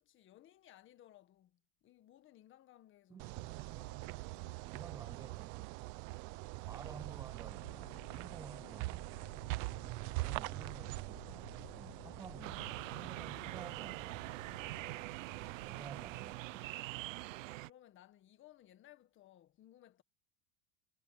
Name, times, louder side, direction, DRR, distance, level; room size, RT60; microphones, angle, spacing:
voice 1, 0.0-3.3 3.6-4.7 6.1-6.3 9.7-9.9 17.6-20.0, left 13 dB, 30° left, 1.8 m, -62 dB
voice 2, 3.1-3.8 4.7-5.8 6.6-9.3 10.1-14.3 15.3-16.7, right 6 dB, 10° right, 0.4 m, -53 dB
sound 1, 3.2-16.3, right 23 dB, 50° right, 0.9 m, -44 dB
Aircraft, 7.5-17.0, left 20 dB, 75° left, 4.0 m, -59 dB
sound 2, 12.4-17.7, right 19 dB, 85° right, 0.9 m, -44 dB
supercardioid pair, 150°, 37 cm